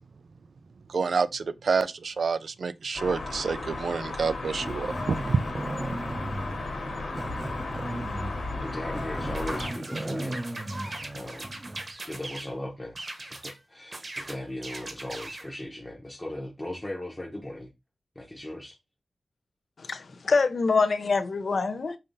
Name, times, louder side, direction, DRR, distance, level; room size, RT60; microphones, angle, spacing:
voice 1, 0.9-5.4, right 5 dB, 75° right, 0.3 m, -28 dB
sound 1, 2.9-9.7, left 2 dB, 90° left, 1.4 m, -34 dB
Growling, 4.6-11.9, right 1 dB, 25° right, 0.6 m, -37 dB
voice 2, 8.6-11.5 12.1-17.7 18.1-18.8, left 1 dB, 15° left, 0.8 m, -38 dB
sound 2, 9.3-12.5 12.9-13.6 13.9-15.5, right 2 dB, 45° right, 1.0 m, -39 dB
voice 3, 19.8-22.0, left 4 dB, 65° left, 0.6 m, -25 dB
5.3 x 2.7 x 2.6 m
wide cardioid pair, 85°, 0 cm